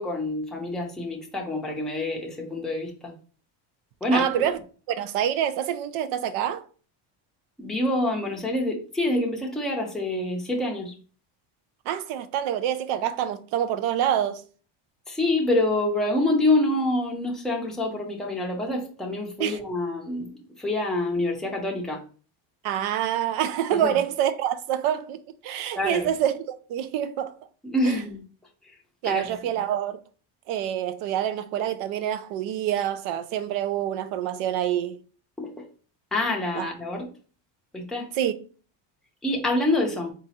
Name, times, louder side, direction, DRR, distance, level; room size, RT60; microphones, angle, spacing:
voice 1, 0.0-3.1 4.0-4.4 7.6-10.9 15.1-20.3 20.6-22.0 23.8-24.0 25.8-26.1 27.6-28.2 29.0-29.3 35.4-35.7 36.1-37.1 37.7-38.1 39.2-40.1, left 1 dB, ahead, 0.4 m, -26 dB
voice 2, 4.1-4.6 4.9-6.6 11.9-14.4 19.4-19.6 22.6-26.3 26.7-27.3 29.0-30.0 30.5-35.0 36.5-36.7 38.2-38.3, right 10 dB, 85° right, 0.6 m, -26 dB
3.9 x 2.4 x 4.1 m
cardioid pair, 175°, 48 cm